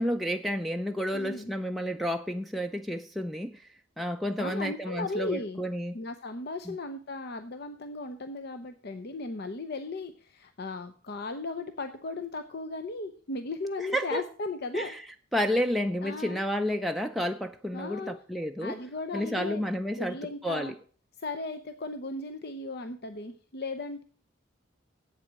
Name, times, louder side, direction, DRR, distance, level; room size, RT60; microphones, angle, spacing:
voice 1, 0.0-3.6 4.0-6.0 6.7-6.8 13.8-14.2 14.7-15.0 15.3-18.8 19.1-20.7, equal, ahead, 0.4 m, -31 dB
voice 2, 1.1-1.5 4.4-5.6 5.9-14.9 16.0-16.4 17.7-18.2 18.6-19.6 20.0-20.7 21.2-24.0, left 3 dB, 55° left, 0.7 m, -36 dB
8.3 x 7.6 x 7.4 m
head